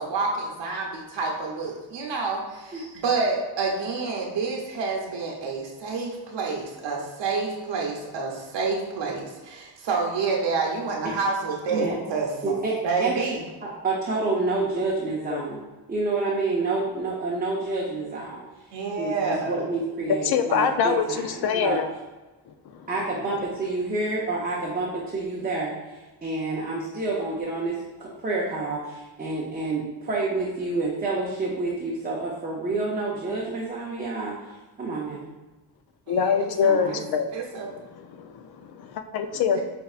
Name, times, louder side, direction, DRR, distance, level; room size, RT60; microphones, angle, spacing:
voice 1, 0.0-12.3 12.8-13.4 18.7-19.5 36.1-37.0 37.3-37.7 39.5-39.6, right 4 dB, 70° right, -1 dB, 0.8 m, -28 dB
voice 2, 12.4-13.2 13.6-15.6 15.9-18.4 19.0-21.8 22.9-34.3 34.8-35.3 36.7-37.0, right 3 dB, 20° right, -5 dB, 0.6 m, -28 dB
voice 3, 20.2-21.8 22.7-22.9 36.1-37.3 37.9-39.6, left 6 dB, 55° left, 7 dB, 0.5 m, -24 dB
5.4 x 3.3 x 2.4 m, 1.2 s
cardioid pair, 145°, 45 cm